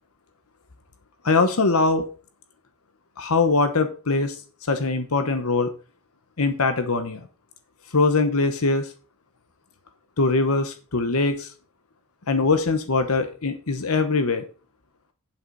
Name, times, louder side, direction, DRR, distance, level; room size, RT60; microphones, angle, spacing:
voice 1, 1.2-2.1 3.2-4.4 4.7-5.7 6.4-7.3 7.9-8.9 10.2-11.5 12.3-14.4, left 3 dB, 75° left, 8 dB, 1.0 m, -22 dB
9.0 x 7.8 x 4.1 m, 0.35 s
head